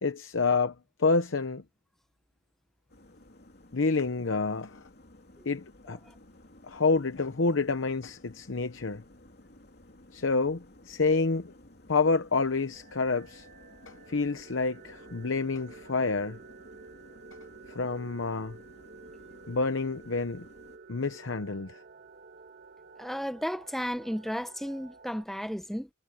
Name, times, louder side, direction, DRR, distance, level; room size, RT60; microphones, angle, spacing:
voice 1, 0.0-1.6 3.7-4.8 5.4-6.0 6.7-9.0 10.1-11.5 11.9-13.5 13.9-16.4 17.7-18.6 19.5-20.5 20.9-21.8, left 4 dB, 75° left, 0.9 m, -28 dB
sound 1, 2.9-20.8, left 1 dB, 55° left, 2.9 m, -55 dB
sound 2, 12.7-25.3, right 4 dB, 50° right, 1.8 m, -51 dB
voice 2, 23.0-25.9, equal, ahead, 0.8 m, -34 dB
head